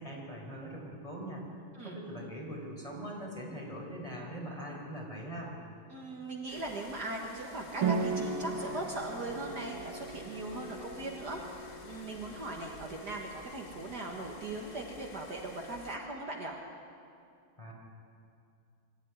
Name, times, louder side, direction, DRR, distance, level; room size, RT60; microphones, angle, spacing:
voice 1, 0.0-1.4 1.8-5.5 17.6-17.7, equal, 15° left, -2 dB, 4.8 m, -41 dB
voice 2, 5.9-16.6, right 2 dB, 50° right, 0 dB, 2.2 m, -39 dB
sound 1, 6.5-16.0, left 4 dB, 45° left, 1.4 m, -52 dB
sound 2, 7.8-15.1, right 4 dB, 75° right, 2.5 m, -38 dB
23.5 x 14.0 x 9.7 m, 2.5 s
omnidirectional pair, 2.3 m